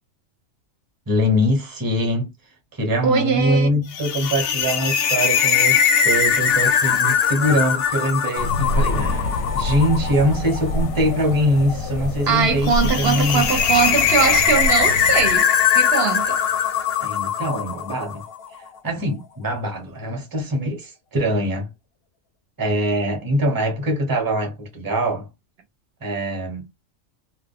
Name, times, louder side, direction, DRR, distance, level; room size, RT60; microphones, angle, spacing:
voice 1, 1.1-2.3 2.7-13.6 17.0-18.2 18.8-21.7 22.6-25.3 26.0-26.6, equal, 20° right, 0.7 m, -23 dB
voice 2, 3.0-3.7 12.3-15.5 15.7-16.4, right 6 dB, 60° right, 0.8 m, -21 dB
sound 1, 3.9-18.3, left 7 dB, 65° left, 0.7 m, -21 dB
sound 2, 8.4-15.4, left 2 dB, 85° left, 1.0 m, -27 dB
2.3 x 2.1 x 3.5 m
omnidirectional pair, 1.4 m